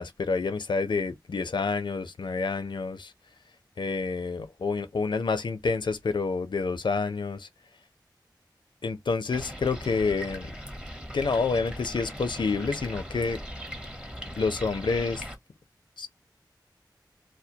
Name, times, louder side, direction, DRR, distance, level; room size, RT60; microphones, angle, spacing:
voice 1, 0.0-3.1 3.8-7.5 8.8-10.5 11.1-13.4 14.4-15.2 16.0-16.1, left 4 dB, 85° left, 0.5 m, -28 dB
sound 1, 9.3-15.4, equal, 10° right, 0.8 m, -39 dB
2.2 x 2.2 x 2.7 m
wide cardioid pair, 65°, 8 cm